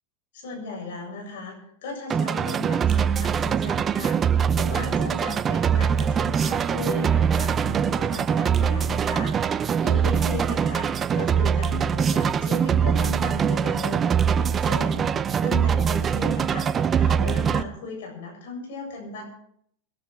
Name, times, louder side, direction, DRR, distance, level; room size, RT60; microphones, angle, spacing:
voice 1, 0.3-1.6 1.8-14.1 14.3-15.1 15.3-19.2, left 3 dB, 75° left, 2 dB, 7.7 m, -36 dB
sound 1, 2.1-17.6, right 7 dB, 25° right, 0.7 m, -23 dB
21.0 x 12.5 x 4.7 m, 0.68 s
supercardioid pair, 125°, 0 cm